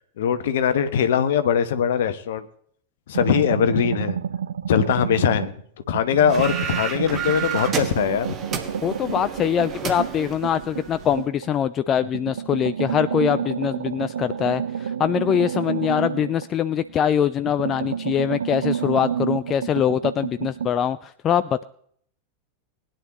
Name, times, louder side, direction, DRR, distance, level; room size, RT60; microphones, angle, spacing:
voice 1, 0.2-2.4 3.1-4.2 4.7-5.5 5.9-8.3, left 8 dB, 60° left, 12 dB, 1.1 m, -21 dB
sound 1, 3.1-5.6 5.9-11.5 12.0-17.0 17.4-20.7, right 8 dB, 65° right, 0.6 m, -29 dB
sound 2, 6.3-11.2, right 7 dB, 30° right, 1.6 m, -31 dB
voice 2, 8.8-21.6, left 9 dB, 30° left, 13 dB, 0.4 m, -23 dB
20.0 x 10.0 x 2.9 m, 0.63 s
figure-of-eight pair, 90°, 0 cm